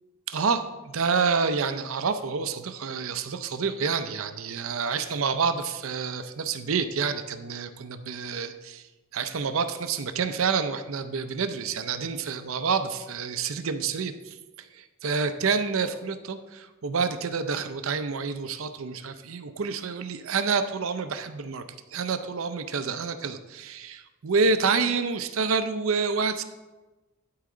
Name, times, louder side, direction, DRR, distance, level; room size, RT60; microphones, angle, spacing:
voice 1, 0.3-8.8 9.1-14.4 14.7-21.6 21.9-26.4, right 5 dB, 65° right, 10 dB, 0.6 m, -28 dB
11.5 x 4.8 x 3.8 m, 1.2 s
head